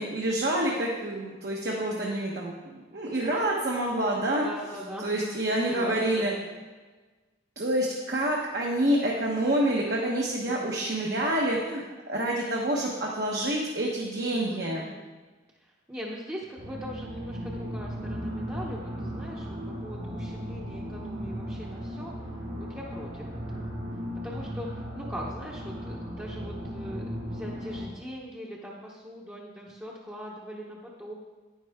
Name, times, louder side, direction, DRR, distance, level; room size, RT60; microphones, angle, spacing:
voice 1, 0.0-4.5 5.0-6.3 7.6-14.8, right 1 dB, 55° right, -2 dB, 1.1 m, -27 dB
voice 2, 1.9-2.5 4.4-6.6 10.5-11.2 14.3-15.1 15.5-22.1 22.6-23.7 24.2-31.2, equal, 10° right, -5 dB, 0.9 m, -41 dB
sound 1, 16.6-27.9, equal, 85° right, 3.0 m, -36 dB
10.0 x 9.9 x 3.6 m, 1.3 s
head